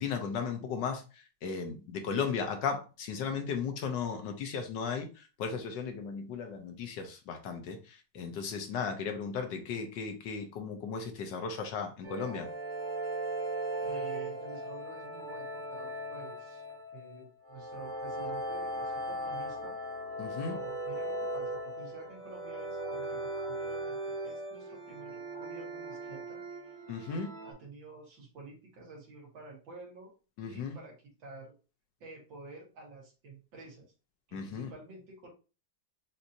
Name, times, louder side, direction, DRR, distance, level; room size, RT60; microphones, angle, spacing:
voice 1, 0.0-12.5 20.2-20.6 26.9-27.3 30.4-30.8 34.3-34.7, left 6 dB, 70° left, 5 dB, 1.4 m, -36 dB
sound 1, 12.0-27.5, right 1 dB, 50° right, 1.3 m, -38 dB
voice 2, 13.8-16.6 16.9-19.7 20.4-26.7 27.0-30.1 30.5-30.9 31.2-31.5 32.0-33.8 34.3-35.3, right 3 dB, 85° right, -3 dB, 2.4 m, -50 dB
6.0 x 2.7 x 2.7 m, 0.33 s
omnidirectional pair, 2.1 m